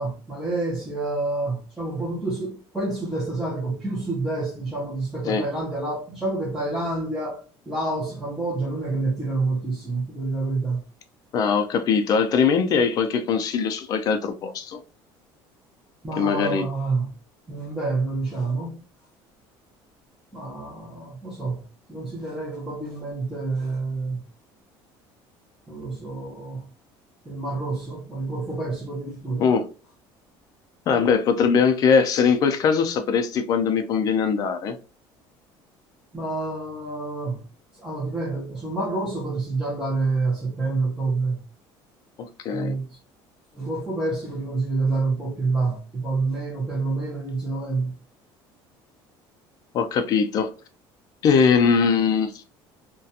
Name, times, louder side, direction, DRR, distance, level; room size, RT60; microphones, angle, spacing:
voice 1, 0.0-7.4 7.7-10.8 16.0-17.1 17.5-18.8 20.3-21.6 21.9-24.2 25.7-26.7 27.3-29.4 36.1-37.4 37.8-41.4 42.5-42.9 43.6-47.9, right 3 dB, 5° right, 0.6 m, -28 dB
voice 2, 11.3-14.8 16.2-16.7 29.4-29.6 30.9-34.8 42.4-42.7 49.7-50.5 51.2-52.3, left 6 dB, 40° left, 0.4 m, -21 dB
2.4 x 2.2 x 2.6 m
cardioid pair, 165°, 10 cm